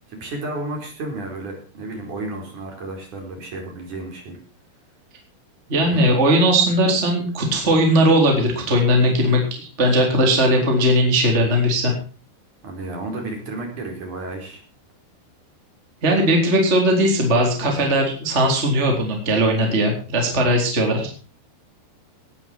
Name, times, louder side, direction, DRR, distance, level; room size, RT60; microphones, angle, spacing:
voice 1, 0.1-4.4 5.9-6.0 12.6-14.6, right 2 dB, 45° right, 2 dB, 5.7 m, -32 dB
voice 2, 5.7-11.9 16.0-21.1, equal, 15° right, 1 dB, 3.6 m, -18 dB
19.0 x 11.5 x 4.5 m, 0.37 s
omnidirectional pair, 5.4 m